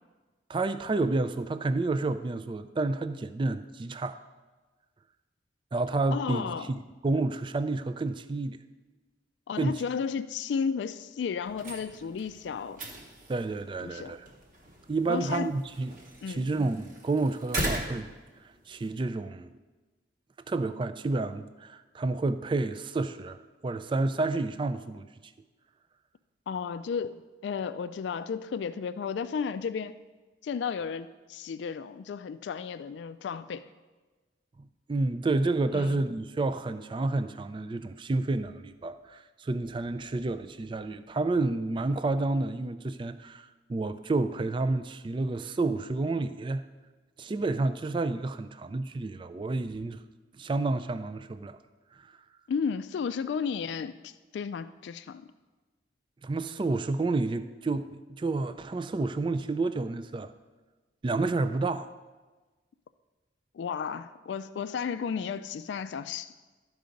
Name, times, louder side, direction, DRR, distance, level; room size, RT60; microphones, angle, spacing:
voice 1, 0.5-4.2 5.7-8.6 9.6-9.8 13.3-14.3 14.9-16.0 16.3-18.1 18.7-19.6 20.5-25.1 34.9-46.6 47.2-50.0 50.4-51.6 52.0-52.1 56.2-60.3 61.0-61.9, right 3 dB, 25° right, 12 dB, 0.3 m, -30 dB
voice 2, 6.1-6.7 9.5-12.8 13.8-14.2 15.1-15.5 16.2-16.4 26.5-27.2 27.4-30.0 30.4-33.7 35.7-36.0 52.5-55.3 63.5-66.3, left 6 dB, 65° left, 12 dB, 0.3 m, -33 dB
sound 1, 11.4-18.9, right 1 dB, 45° right, 1.2 m, -39 dB
12.5 x 4.7 x 5.2 m, 1.3 s
head